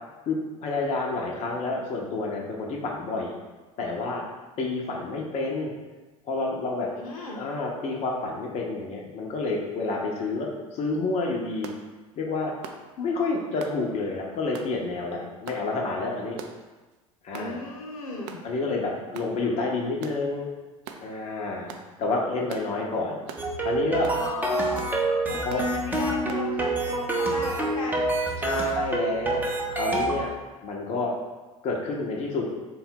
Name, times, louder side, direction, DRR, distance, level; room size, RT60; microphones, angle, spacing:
voice 1, 0.3-3.3 3.8-4.2 4.6-5.7 6.3-6.9 7.3-11.7 12.2-12.5 13.0-16.4 17.2-17.6 18.4-20.5 21.0-21.7 22.0-23.2 23.6-24.1 25.4-25.6 28.4-29.4 29.7-30.3 30.6-31.1 31.6-32.4, left 3 dB, 40° left, -1 dB, 0.6 m, -29 dB
voice 2, 6.9-7.4 17.3-18.4 24.1-24.8 25.2-28.0, left 2 dB, 70° left, -1 dB, 0.8 m, -35 dB
sound 1, 11.6-11.8 12.6-12.8 13.6-13.8 14.5-14.7 15.5-15.6 16.4-16.6 17.3-17.5 18.3-18.5 19.1-19.3 20.0-20.2 20.8-21.0 21.7-21.9 22.5-22.7 23.3-23.5 24.0-24.2 24.8-25.0 25.5-25.7 26.3-26.5, right 7 dB, 55° right, 0.4 m, -41 dB
sound 2, 23.4-30.2, right 2 dB, 10° right, 0.6 m, -27 dB
3.4 x 2.2 x 4.3 m, 1.2 s
figure-of-eight pair, 70°, 18 cm